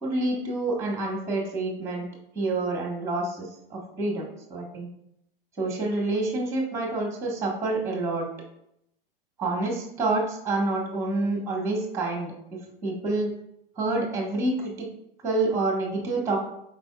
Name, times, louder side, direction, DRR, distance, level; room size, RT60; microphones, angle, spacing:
voice 1, 0.0-2.1 2.3-4.9 5.6-8.3 9.4-13.3 13.7-14.9 15.2-16.4, right 2 dB, 10° right, 0 dB, 1.4 m, -28 dB
10.0 x 4.0 x 2.4 m, 0.78 s
hypercardioid pair, 95°, 29 cm